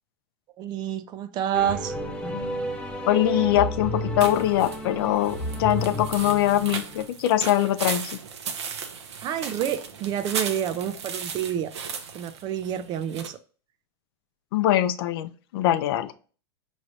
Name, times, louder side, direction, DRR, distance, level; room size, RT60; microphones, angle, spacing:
voice 1, 0.6-1.9 9.2-11.7 12.1-13.4, right 9 dB, 30° right, 0.4 m, -28 dB
sound 1, 1.5-7.1, equal, 10° left, 0.7 m, -31 dB
voice 2, 3.1-8.2 14.5-16.1, left 13 dB, 60° left, 0.5 m, -23 dB
sound 2, 4.2-13.3, right 6 dB, 80° right, 0.8 m, -36 dB
5.0 x 3.1 x 2.7 m
hypercardioid pair, 125°, 14 cm